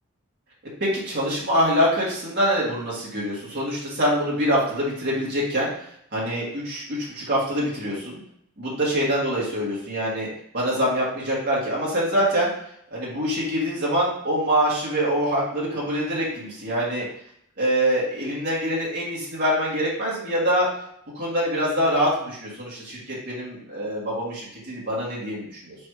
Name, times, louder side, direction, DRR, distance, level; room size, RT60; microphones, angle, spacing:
voice 1, 0.8-5.7 6.1-6.8 7.1-8.2 8.6-10.3 10.5-12.5 12.9-17.1 17.6-20.7 21.1-25.8, equal, 50° right, -5 dB, 1.7 m, -24 dB
3.5 x 3.1 x 4.6 m, 0.70 s
head